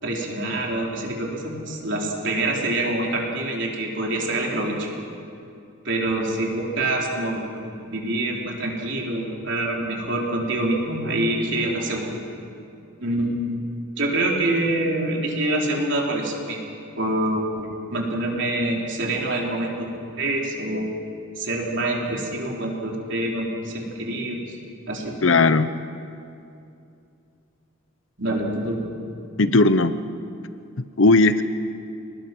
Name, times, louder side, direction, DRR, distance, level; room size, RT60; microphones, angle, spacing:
voice 1, 0.0-4.9 5.8-12.2 13.0-13.6 14.0-19.9 20.2-20.9 21.4-24.4 24.9-25.1 28.2-28.9, right 1 dB, 55° right, -1 dB, 4.0 m, -26 dB
voice 2, 25.2-25.7 29.4-29.9 30.8-31.4, left 3 dB, 60° left, 12 dB, 0.8 m, -17 dB
27.5 x 19.5 x 6.2 m, 2.6 s
head